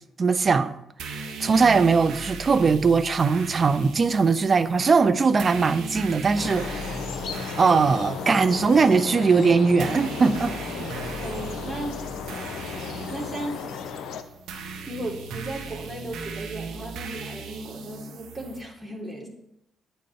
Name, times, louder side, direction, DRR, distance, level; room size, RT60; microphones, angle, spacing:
voice 1, 0.2-0.8 1.4-7.0 7.6-10.6, right 4 dB, 40° right, 0.8 m, -20 dB
sound 1, 1.0-18.6, right 4 dB, 70° right, 1.2 m, -38 dB
sound 2, 6.4-14.2, left 6 dB, 60° left, 0.9 m, -34 dB
voice 2, 11.2-12.0 13.1-13.6 14.9-19.3, right 1 dB, 20° right, 3.8 m, -35 dB
10.0 x 9.1 x 4.5 m
hypercardioid pair, 45°, 0 cm